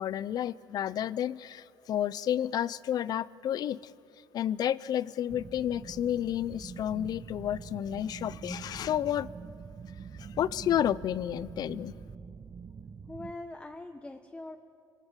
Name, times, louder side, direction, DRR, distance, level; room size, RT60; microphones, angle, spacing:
voice 1, 0.0-3.9 4.3-9.3 10.2-11.9, left 11 dB, 60° left, 19 dB, 0.7 m, -31 dB
sound 1, 5.3-13.3, right 6 dB, 35° right, 1.1 m, -45 dB
voice 2, 13.1-14.6, left 2 dB, 15° left, 6 dB, 1.3 m, -42 dB
26.5 x 24.0 x 7.5 m, 2.5 s
cardioid pair, 110°, 8 cm